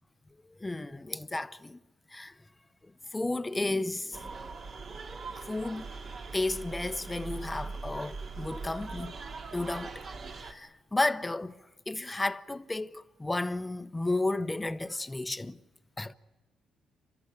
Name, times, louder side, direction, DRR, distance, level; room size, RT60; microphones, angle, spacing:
voice 1, 0.5-1.8 2.1-2.4 2.8-4.5 5.5-5.9 6.3-9.2 9.5-10.1 10.3-15.6 16.0-16.1, left 2 dB, 15° left, 0.8 m, -33 dB
sound 1, 4.1-10.5, right 4 dB, 50° right, 2.6 m, -41 dB
29.5 x 13.0 x 9.8 m
cardioid pair, 90°, 0 cm